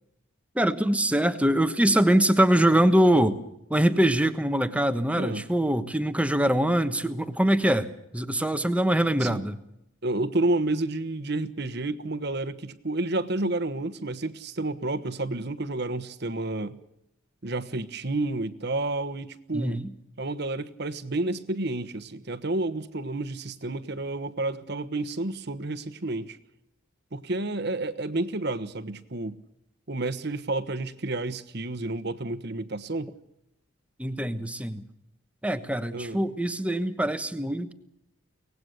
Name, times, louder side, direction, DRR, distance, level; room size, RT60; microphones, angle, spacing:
voice 1, 0.5-3.4 3.7-9.6 19.5-19.8 34.0-34.8 35.4-37.7, right 1 dB, 5° right, 10 dB, 1.2 m, -23 dB
voice 2, 10.0-16.8 17.4-19.8 20.2-26.4 27.1-29.4 29.9-33.1 35.9-36.2, right 2 dB, 50° right, 13 dB, 1.2 m, -30 dB
24.0 x 19.0 x 6.7 m, 0.83 s
head